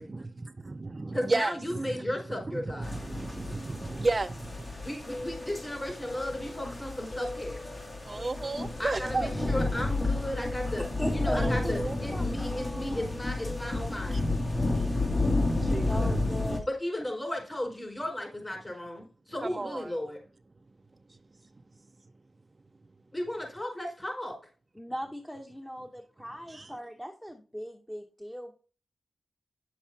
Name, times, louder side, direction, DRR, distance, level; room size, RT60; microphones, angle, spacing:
voice 1, 0.1-2.0 2.3-4.8 8.0-9.3 11.3-12.0 14.1-14.2 14.8-14.9 15.6-16.2 19.4-19.9 26.5-26.7, right 3 dB, 40° right, 0.4 m, -33 dB
voice 2, 1.1-2.9 4.8-7.6 8.8-10.9 11.1-14.2 16.7-20.2 23.1-24.4, left 1 dB, 25° left, 4.9 m, -35 dB
sound 1, 2.8-16.6, left 2 dB, 45° left, 2.4 m, -31 dB
sound 2, 4.5-13.8, left 2 dB, 65° left, 5.1 m, -43 dB
voice 3, 11.0-11.7 12.1-13.1 15.2-15.4 15.9-16.7 24.7-28.5, equal, 5° left, 1.0 m, -38 dB
9.8 x 7.1 x 2.8 m
cardioid pair, 55°, 0 cm